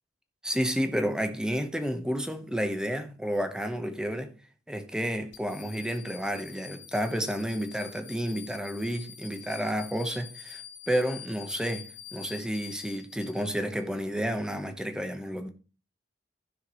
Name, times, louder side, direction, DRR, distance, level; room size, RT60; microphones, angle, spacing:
voice 1, 0.4-4.3 4.7-10.6 10.9-15.5, equal, 5° right, 0.9 m, -31 dB
sound 1, 5.3-13.8, left 9 dB, 70° left, 2.7 m, -47 dB
14.5 x 5.9 x 3.0 m
head